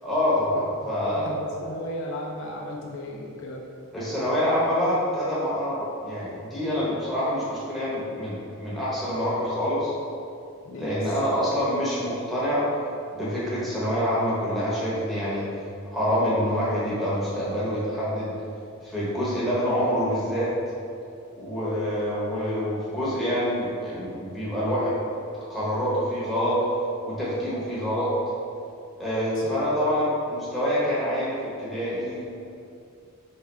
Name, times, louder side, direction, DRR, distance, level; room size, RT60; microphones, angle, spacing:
voice 1, 0.0-1.3 3.9-9.9 10.8-12.6 13.1-15.4 15.9-18.3 18.8-20.5 21.3-24.9 25.5-26.6 27.0-28.1 29.0-32.2, equal, ahead, -10 dB, 1.1 m, -26 dB
voice 2, 1.2-3.6 10.6-11.2 29.3-29.5, left 1 dB, 60° left, -1 dB, 0.4 m, -35 dB
4.2 x 3.4 x 3.4 m, 2.6 s
head